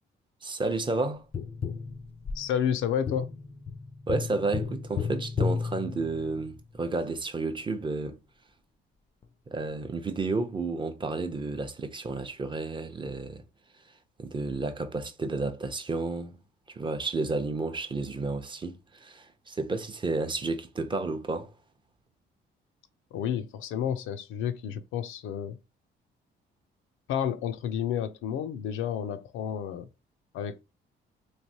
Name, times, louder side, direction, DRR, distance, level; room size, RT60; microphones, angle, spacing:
voice 1, 0.4-1.3 4.1-8.2 9.5-13.4 14.2-16.4 16.7-21.5, right 3 dB, 25° right, 0.5 m, -31 dB
Tap, 1.3-6.6 9.2-9.3, left 5 dB, 30° left, 0.4 m, -34 dB
voice 2, 2.4-3.3 23.1-25.6 27.1-29.9 30.3-30.6, left 9 dB, 85° left, 0.4 m, -30 dB
3.2 x 2.5 x 2.7 m
cardioid pair, 90°, 20 cm